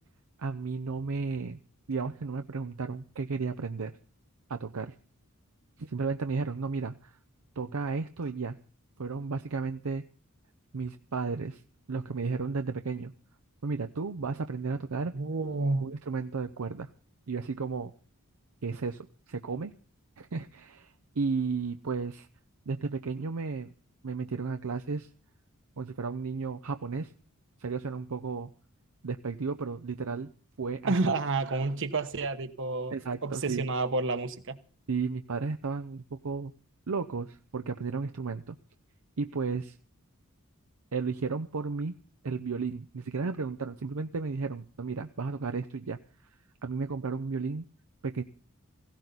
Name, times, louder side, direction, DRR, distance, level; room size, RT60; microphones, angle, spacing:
voice 1, 0.4-1.6 1.9-3.9 4.5-4.9 5.8-7.2 7.6-8.6 9.0-10.0 10.7-11.6 11.9-13.1 13.6-15.1 15.8-16.9 17.3-17.9 18.6-19.7 20.2-22.3 22.7-23.7 24.0-25.1 25.8-27.1 27.6-28.5 29.0-30.3 30.6-31.1 32.9-33.6 34.9-36.5 36.9-38.6 39.2-39.8 40.9-41.9 42.2-46.0 46.6-47.7 48.0-48.2, right 4 dB, 75° right, 7 dB, 0.7 m, -33 dB
voice 2, 15.1-15.9 30.9-32.9 33.2-34.6, right 3 dB, 60° right, 9 dB, 1.2 m, -29 dB
17.0 x 16.0 x 4.1 m, 0.43 s
head